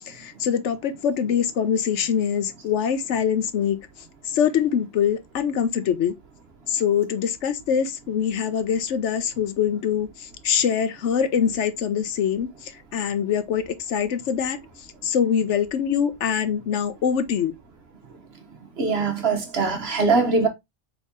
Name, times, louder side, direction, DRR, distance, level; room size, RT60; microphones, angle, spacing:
voice 1, 0.2-3.8 4.3-6.1 6.7-10.1 10.4-12.5 12.9-13.6 13.9-14.6 15.0-17.5, left 8 dB, 70° left, 1.0 m, -23 dB
voice 2, 18.8-20.5, right 4 dB, 55° right, 1.3 m, -22 dB
4.2 x 3.6 x 3.5 m
omnidirectional pair, 1.3 m